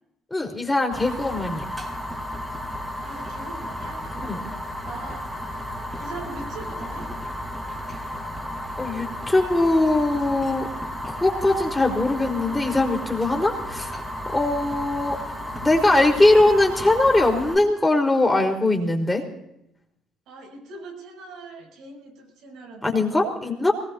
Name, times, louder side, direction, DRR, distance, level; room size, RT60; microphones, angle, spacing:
voice 1, 0.3-1.6 4.2-4.5 8.8-10.7 11.1-13.9 14.3-15.2 15.6-19.2 22.8-23.7, left 2 dB, 15° left, 2 dB, 4.6 m, -21 dB
Fire, 0.9-17.6, left 1 dB, 10° right, 5.5 m, -33 dB
voice 2, 3.0-5.6 5.9-7.1 20.3-23.3, right 3 dB, 70° right, 1 dB, 7.9 m, -41 dB
23.5 x 20.5 x 2.8 m, 0.81 s
hypercardioid pair, 55°, 0 cm